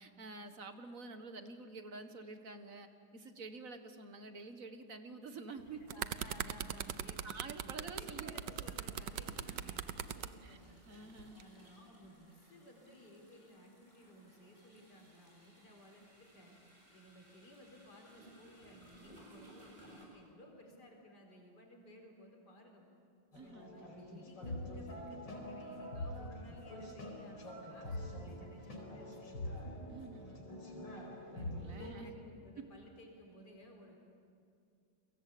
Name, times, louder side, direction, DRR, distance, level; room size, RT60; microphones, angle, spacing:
voice 1, 0.0-6.0 6.5-6.6 7.2-8.3 10.4-10.6 10.9-11.5 23.3-23.7 29.9-30.6 31.3-32.1 32.6-32.7, right 3 dB, 45° right, 8 dB, 1.9 m, -49 dB
sound 1, 5.6-10.3 11.2-11.4, right 10 dB, 75° right, 1.5 m, -40 dB
voice 2, 5.8-7.3 7.6-10.8 11.3-16.6 16.9-22.9 23.4-29.8 31.7-34.1, equal, 60° left, 1 dB, 5.2 m, -57 dB
sound 2, 7.1-7.2 8.5-20.0, right 1 dB, 25° right, 7.3 m, -62 dB
sound 3, 23.3-31.9, left 1 dB, 80° left, 5.1 m, -45 dB
30.0 x 23.5 x 8.6 m, 2.4 s
omnidirectional pair, 2.0 m